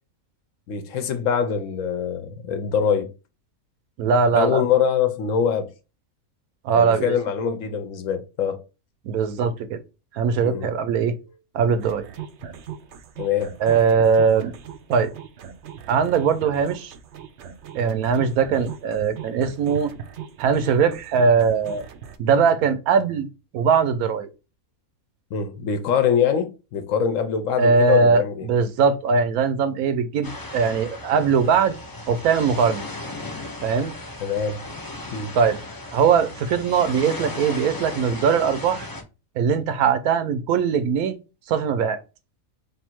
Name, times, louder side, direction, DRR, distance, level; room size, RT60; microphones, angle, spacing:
voice 1, 0.7-3.1 4.3-5.7 6.7-8.6 10.4-10.7 13.2-13.5 25.3-28.5 34.2-34.6 35.1-35.3, left 7 dB, 70° left, 1.0 m, -23 dB
voice 2, 4.0-4.6 6.6-7.1 9.1-9.8 10.1-11.2 11.5-12.1 13.6-14.5 14.9-15.1 15.9-16.9 17.7-19.9 20.4-21.8 22.2-23.3 23.5-24.3 27.6-31.7 32.1-32.8 33.6-33.9 35.3-35.6 35.9-38.9 39.4-41.2 41.5-42.0, right 6 dB, 90° right, 1.1 m, -20 dB
sound 1, 11.8-22.2, right 8 dB, 65° right, 0.7 m, -39 dB
sound 2, 30.2-39.0, left 2 dB, 25° left, 0.4 m, -36 dB
3.5 x 2.5 x 4.3 m
omnidirectional pair, 1.5 m